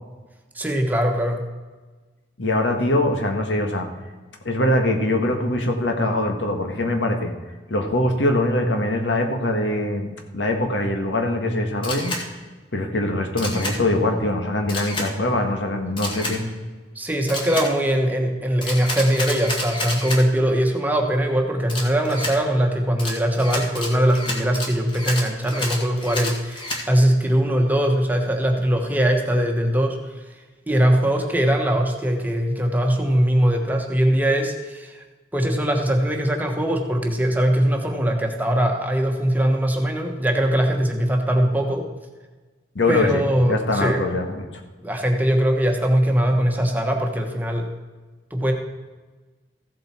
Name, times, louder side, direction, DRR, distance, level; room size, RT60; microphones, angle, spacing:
voice 1, 0.5-1.4 16.9-30.1 30.7-35.0 35.3-41.9 42.9-44.0 44.8-47.7 48.3-48.5, equal, 10° right, 2 dB, 1.2 m, -21 dB
voice 2, 2.4-3.9 4.4-7.3 7.7-12.2 12.7-16.4 42.7-44.5, left 1 dB, 85° left, 4 dB, 1.6 m, -23 dB
Camera, 11.8-12.2 13.4-13.8 14.7-15.1 16.0-16.4 17.3-17.7 18.6-20.2 21.7-22.3 23.0-26.8, left 1 dB, 25° left, 1.9 m, -29 dB
15.0 x 7.7 x 4.4 m, 1.3 s
head